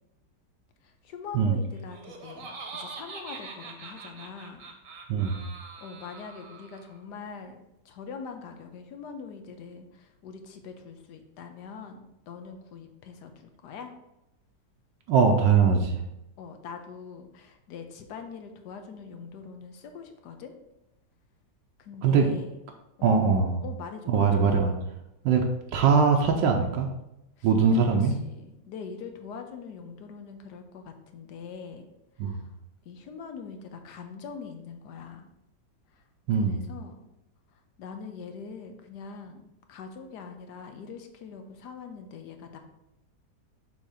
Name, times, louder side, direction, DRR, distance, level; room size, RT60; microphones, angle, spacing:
voice 1, 0.8-4.7 5.8-13.9 16.4-20.5 21.8-22.6 23.0-23.2 23.6-24.3 27.4-27.5 28.2-31.8 32.2-32.5 32.8-35.3 35.9-36.0 36.4-37.0 37.5-42.6, left 5 dB, 70° left, 6 dB, 1.3 m, -43 dB
Laughter, 1.7-7.0, right 4 dB, 55° right, 1.2 m, -43 dB
voice 2, 5.1-5.4 15.1-16.0 22.0-22.3 23.0-23.6 24.1-24.8 25.2-25.4 25.7-26.9 27.4-28.1 32.2-32.4 36.3-36.6, right 5 dB, 80° right, 2 dB, 1.3 m, -21 dB
6.3 x 2.9 x 5.6 m, 0.88 s
omnidirectional pair, 1.9 m